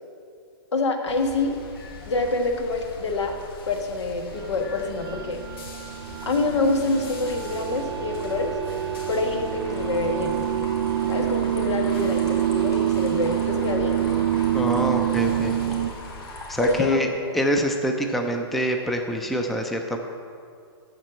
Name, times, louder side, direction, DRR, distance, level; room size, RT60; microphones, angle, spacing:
voice 1, 0.7-1.6 2.1-3.4 3.7-5.4 6.2-8.6 9.1-10.4 11.1-14.0 16.6-17.4, left 3 dB, 90° left, 4 dB, 1.4 m, -26 dB
sound 1, 1.1-16.7, left 3 dB, 55° left, 1.3 m, -42 dB
sound 2, 4.5-15.9, right 11 dB, 60° right, 0.5 m, -26 dB
sound 3, 9.6-16.9, equal, 20° left, 1.7 m, -40 dB
voice 2, 14.5-15.6 16.5-17.1 17.3-20.0, equal, ahead, 4 dB, 0.4 m, -25 dB
7.5 x 6.6 x 7.4 m, 2.3 s
hypercardioid pair, 155°, 14 cm